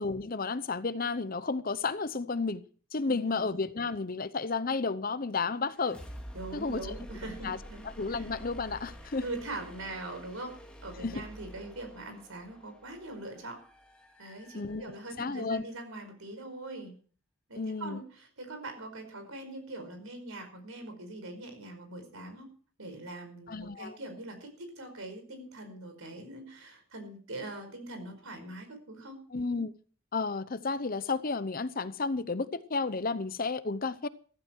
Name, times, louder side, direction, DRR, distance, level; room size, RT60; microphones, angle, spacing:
voice 1, 0.0-2.6 2.9-6.0 6.5-6.8 7.4-7.6 8.0-9.3 11.0-11.2 14.5-14.9 15.2-15.6 17.5-18.0 23.5-24.0 29.3-29.7 30.1-34.1, left 4 dB, 45° left, 0.8 m, -32 dB
voice 2, 3.0-3.5 6.3-7.8 8.1-8.3 9.2-10.5 10.8-13.6 14.2-16.9 17.5-22.5 22.8-29.2, right 2 dB, 90° right, 5.0 m, -42 dB
sound 1, 5.6-15.4, equal, 5° left, 2.3 m, -49 dB
15.0 x 14.0 x 4.6 m
head